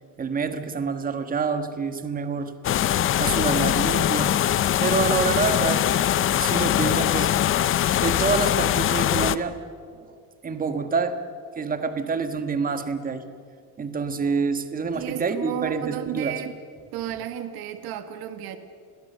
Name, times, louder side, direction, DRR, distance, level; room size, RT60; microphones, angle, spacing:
voice 1, 0.2-2.5 2.9-4.3 4.8-5.9 6.4-7.3 7.9-9.6 10.0-10.1 10.4-11.2 11.6-13.2 13.8-16.3, right 5 dB, 20° right, 9 dB, 1.4 m, -27 dB
sound 1, 2.6-9.4, left 11 dB, 30° left, 0.5 m, -22 dB
voice 2, 14.9-16.5 16.9-18.6, right 11 dB, 55° right, 9 dB, 1.7 m, -32 dB
30.0 x 22.0 x 6.7 m, 2.3 s
cardioid pair, 160°, 43 cm